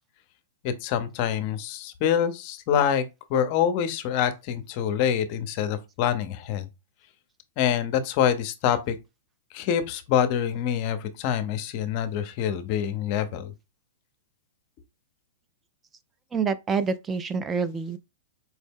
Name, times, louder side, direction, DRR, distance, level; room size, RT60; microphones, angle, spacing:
voice 1, 0.6-6.7 7.6-9.0 9.5-13.5, left 9 dB, 45° left, 0.6 m, -26 dB
voice 2, 16.3-18.0, right 5 dB, 20° right, 0.3 m, -27 dB
4.4 x 2.0 x 3.6 m
hypercardioid pair, 125°, 0 cm